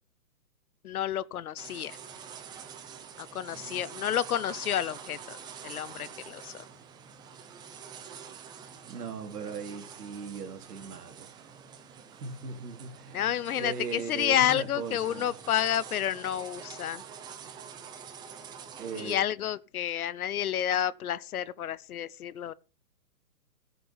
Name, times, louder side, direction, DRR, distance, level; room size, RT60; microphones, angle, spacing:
voice 1, 0.8-2.0 3.2-5.4 5.6-6.6 13.1-17.0 19.0-22.5, left 10 dB, 60° left, 0.9 m, -30 dB
sound 1, 1.6-19.2, right 7 dB, 10° right, 0.7 m, -46 dB
voice 2, 8.9-11.3 12.1-15.3 18.8-19.2, right 5 dB, 65° right, 3.3 m, -39 dB
14.5 x 6.9 x 5.6 m
hypercardioid pair, 140°, 50 cm